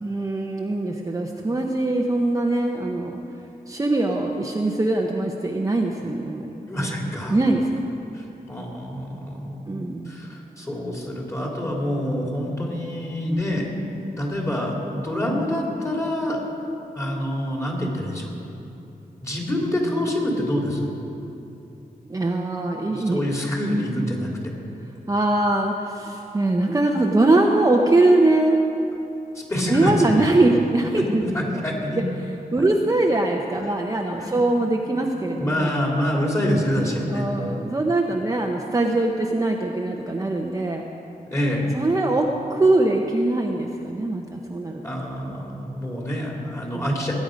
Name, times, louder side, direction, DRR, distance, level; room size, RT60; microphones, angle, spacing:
voice 1, 0.0-3.2 3.7-6.5 7.3-7.8 9.7-10.2 22.1-23.2 25.1-28.6 29.7-31.2 31.5-31.6 32.0-32.1 32.5-35.7 37.1-40.9 41.7-44.8 46.7-46.9, right 2 dB, 20° right, 0 dB, 0.8 m, -22 dB
voice 2, 6.7-7.4 8.1-9.6 10.0-13.7 14.2-16.4 16.9-18.3 19.2-20.9 22.9-24.5 29.3-30.0 30.5-30.6 31.0-32.0 33.6-33.7 34.2-34.7 35.0-35.1 35.4-37.3 41.3-41.7 44.8-47.1, equal, 20° left, -2 dB, 2.9 m, -26 dB
20.0 x 9.5 x 5.2 m, 2.8 s
wide cardioid pair, 125°, 15 cm